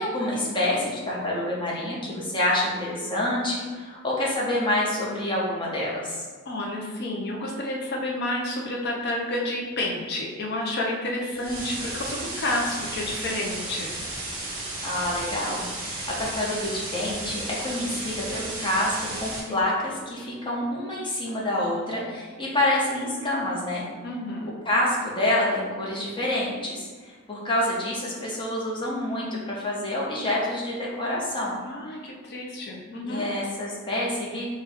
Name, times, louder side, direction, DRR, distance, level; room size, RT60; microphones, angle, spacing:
voice 1, 0.0-6.2 14.8-23.8 24.7-31.6 33.0-34.5, left 1 dB, 25° left, -4 dB, 0.8 m, -27 dB
voice 2, 6.5-14.0 24.0-24.5 31.6-33.2, left 1 dB, 50° left, -1 dB, 0.5 m, -30 dB
sound 1, 11.3-19.4, right 2 dB, 45° right, 1.0 m, -34 dB
4.4 x 2.3 x 3.4 m, 1.5 s
head